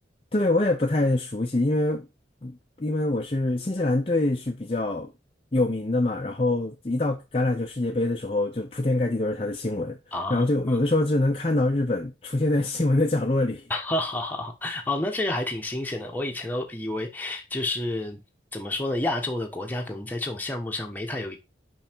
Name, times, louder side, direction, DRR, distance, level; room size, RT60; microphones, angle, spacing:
voice 1, 0.3-2.1 2.4-5.1 5.5-10.0 10.3-13.6, left 2 dB, 30° left, 0.6 m, -24 dB
voice 2, 10.1-10.8 13.7-18.2 18.5-21.4, left 2 dB, 10° left, 1.1 m, -30 dB
5.6 x 5.4 x 4.5 m
head